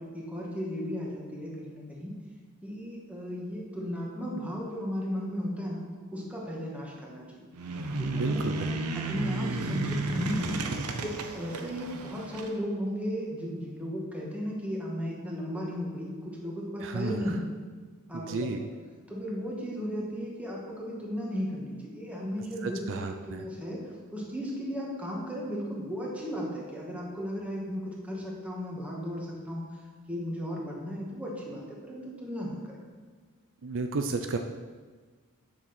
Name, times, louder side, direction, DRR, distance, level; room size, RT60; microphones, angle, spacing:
voice 1, 0.0-2.2 2.6-7.5 7.9-10.5 11.0-17.5 18.1-18.7 19.1-23.8 24.1-29.8 30.1-32.8, equal, 5° right, -3 dB, 1.8 m, -35 dB
sound 1, 7.5-12.5, right 2 dB, 90° right, 0.8 m, -33 dB
voice 2, 8.1-8.7 16.8-17.4 18.1-18.6 22.6-23.5 33.6-34.4, right 3 dB, 60° right, 5 dB, 0.5 m, -33 dB
7.4 x 6.4 x 6.0 m, 1.5 s
head